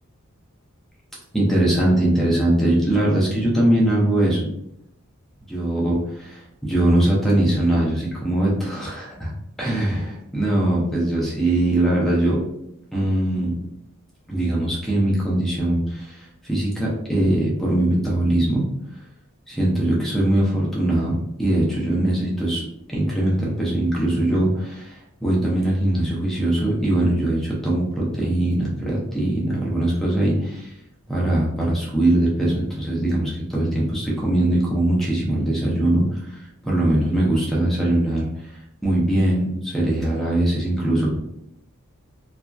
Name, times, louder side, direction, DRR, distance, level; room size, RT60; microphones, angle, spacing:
voice 1, 1.3-4.5 5.5-6.0 6.2-12.4 12.9-13.6 14.3-18.6 19.5-30.7 31.1-38.5 38.8-41.2, right 1 dB, ahead, -5 dB, 0.6 m, -21 dB
2.8 x 2.3 x 2.3 m, 0.78 s
head